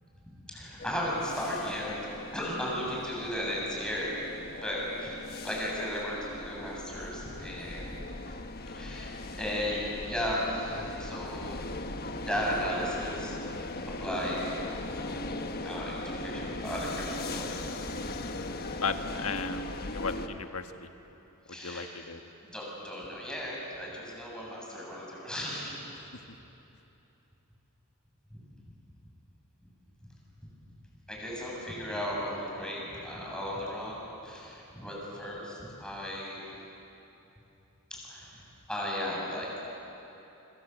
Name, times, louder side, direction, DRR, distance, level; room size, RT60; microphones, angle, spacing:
voice 1, 0.3-2.0 2.3-4.3 4.6-8.1 8.7-11.7 12.2-13.7 14.0-14.7 14.9-17.7 21.5-21.9 22.4-25.8 28.3-28.4 31.1-36.4 37.9-39.7, equal, 5° left, -4 dB, 7.6 m, -35 dB
sound 1, 0.8-20.3, left 2 dB, 45° left, 1.3 m, -39 dB
voice 2, 18.8-20.9 21.5-22.2, left 5 dB, 70° left, 6 dB, 1.5 m, -35 dB
27.0 x 25.5 x 8.2 m, 3.0 s
head